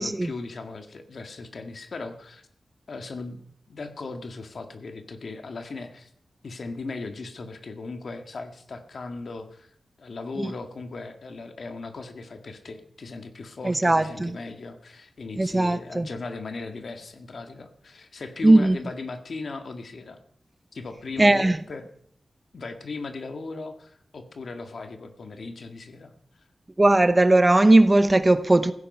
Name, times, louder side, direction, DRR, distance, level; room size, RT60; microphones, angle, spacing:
voice 1, 0.0-2.5 2.9-3.4 3.7-6.1 6.4-9.7 10.0-20.2 20.7-21.8 22.5-26.1, left 3 dB, 60° left, 1.9 m, -37 dB
voice 2, 13.6-14.4 15.4-16.1 18.4-18.8 21.2-21.6 26.8-28.7, right 2 dB, 20° right, 0.8 m, -18 dB
15.5 x 15.5 x 5.5 m
wide cardioid pair, 155°, 0 cm